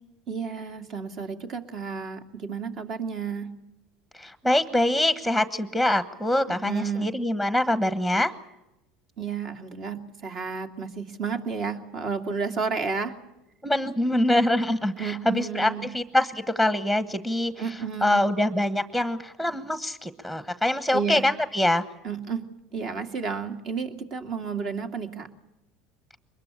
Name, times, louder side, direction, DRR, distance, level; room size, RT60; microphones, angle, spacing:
voice 1, 0.3-3.6 6.5-7.1 9.2-13.2 15.0-15.9 17.6-18.3 20.9-21.2 22.0-25.3, right 5 dB, 50° right, 6 dB, 2.5 m, -32 dB
voice 2, 4.2-8.3 13.6-17.7 18.0-21.8, left 1 dB, 10° right, 12 dB, 1.2 m, -24 dB
23.5 x 21.0 x 8.4 m, 0.92 s
hypercardioid pair, 90°, 0 cm